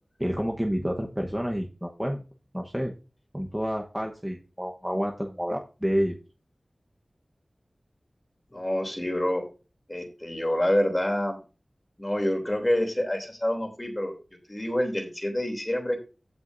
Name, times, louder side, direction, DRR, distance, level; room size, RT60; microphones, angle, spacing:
voice 1, 0.2-2.2 2.5-2.9 3.3-6.2, equal, 5° right, 0 dB, 1.2 m, -29 dB
voice 2, 8.5-9.4 9.9-11.4 12.0-14.1 14.5-16.0, left 1 dB, 25° left, 3 dB, 3.1 m, -27 dB
16.0 x 6.1 x 2.7 m, 0.32 s
wide cardioid pair, 55°, 0 cm